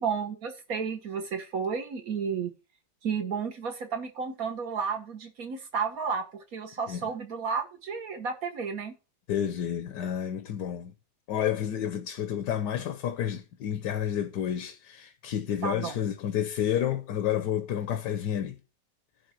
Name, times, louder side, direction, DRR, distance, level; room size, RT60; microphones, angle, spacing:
voice 1, 0.0-2.5 3.0-8.9 15.6-16.0, right 6 dB, 55° right, 1.9 m, -32 dB
voice 2, 9.3-10.9 11.3-18.6, left 10 dB, 70° left, 1.4 m, -30 dB
11.0 x 3.8 x 7.5 m
omnidirectional pair, 2.0 m